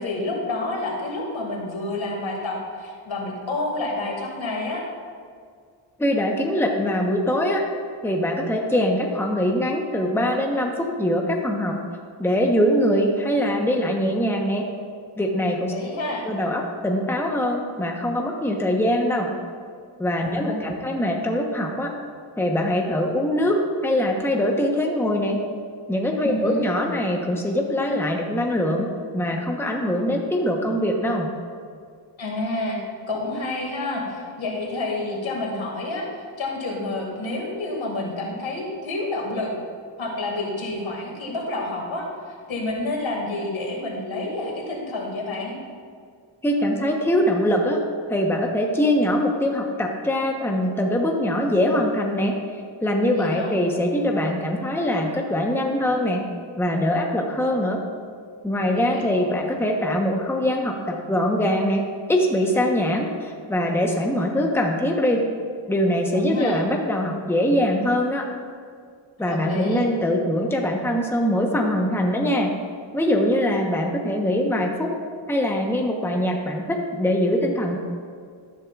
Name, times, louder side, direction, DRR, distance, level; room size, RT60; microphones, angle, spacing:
voice 1, 0.0-4.8 15.7-16.2 20.2-20.9 26.2-26.6 32.2-32.8 33.1-36.1 36.4-39.5 40.0-42.1 42.5-45.6 53.2-53.5 58.7-59.2 66.1-66.6 69.2-69.8, left 2 dB, 80° left, -1 dB, 2.2 m, -29 dB
voice 2, 6.0-7.6 8.0-11.8 12.2-14.7 15.2-15.7 16.2-19.3 20.0-21.9 22.4-25.4 25.9-28.9 29.1-31.3 46.4-47.8 48.1-52.3 52.8-56.2 56.6-57.8 58.4-61.8 62.1-65.3 65.7-68.3 69.2-72.5 72.9-75.0 75.3-77.8, equal, 5° left, 1 dB, 1.0 m, -23 dB
12.5 x 10.5 x 2.4 m, 2.1 s
wide cardioid pair, 95°, 47 cm